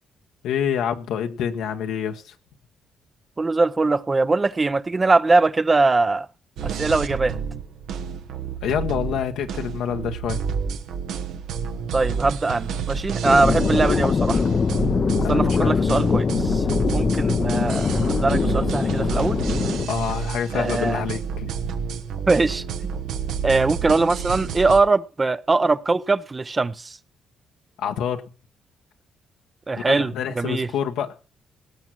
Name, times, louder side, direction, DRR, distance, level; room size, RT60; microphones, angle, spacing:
voice 1, 0.4-2.3 8.6-10.4 15.2-15.8 19.9-21.5 27.8-28.2 29.9-31.2, left 8 dB, 85° left, 1.2 m, -27 dB
voice 2, 3.4-6.3 6.6-7.4 11.9-14.4 15.3-16.6 16.9-19.4 20.5-21.0 22.3-22.6 23.4-27.0 29.7-30.7, right 3 dB, 25° right, 0.6 m, -21 dB
sound 1, 6.6-24.8, right 6 dB, 85° right, 1.1 m, -29 dB
sound 2, 13.2-19.9, left 5 dB, 40° left, 0.6 m, -22 dB
18.0 x 6.1 x 6.2 m
cardioid pair, 90°, 0 cm